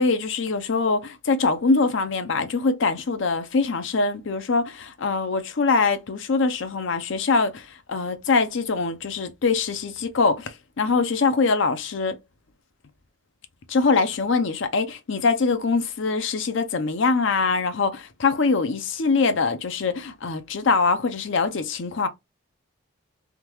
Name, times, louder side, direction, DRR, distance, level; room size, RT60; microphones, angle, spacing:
voice 1, 0.0-12.2 13.7-22.1, left 4 dB, 65° left, 0.6 m, -23 dB
3.6 x 2.3 x 3.0 m
head